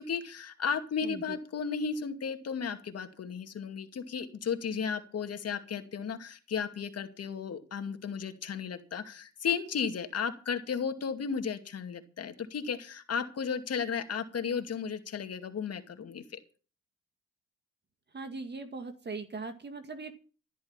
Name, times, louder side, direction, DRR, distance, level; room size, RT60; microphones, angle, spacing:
voice 1, 0.0-16.2, left 6 dB, 55° left, 6 dB, 2.4 m, -34 dB
voice 2, 1.0-1.4 18.1-20.2, right 3 dB, 35° right, 8 dB, 2.2 m, -40 dB
14.5 x 11.5 x 5.7 m, 0.38 s
cardioid pair, 90°, 30 cm